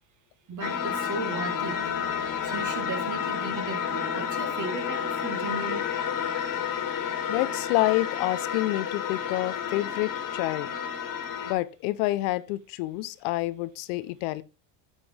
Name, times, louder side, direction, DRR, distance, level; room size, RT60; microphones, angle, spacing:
voice 1, 0.5-1.9 2.4-5.9, right 4 dB, 40° right, 1.9 m, -36 dB
sound 1, 0.6-11.5, left 8 dB, 45° left, 1.8 m, -30 dB
voice 2, 7.3-10.7 11.5-14.4, left 18 dB, 75° left, 0.7 m, -28 dB
8.1 x 5.4 x 3.6 m
supercardioid pair, 105°, 44 cm